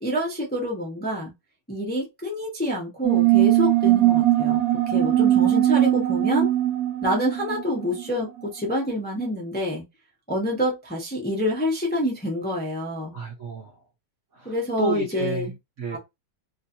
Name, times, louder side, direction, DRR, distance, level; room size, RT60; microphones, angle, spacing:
voice 1, 0.0-1.3 1.7-6.5 7.0-9.8 10.3-13.1 14.4-15.5 15.9-16.0, equal, 10° left, 0.6 m, -27 dB
sound 1, 3.0-8.2, right 14 dB, 80° right, 0.7 m, -20 dB
voice 2, 13.1-13.8 14.3-16.0, right 5 dB, 55° right, 1.0 m, -31 dB
3.1 x 2.8 x 2.7 m
omnidirectional pair, 2.0 m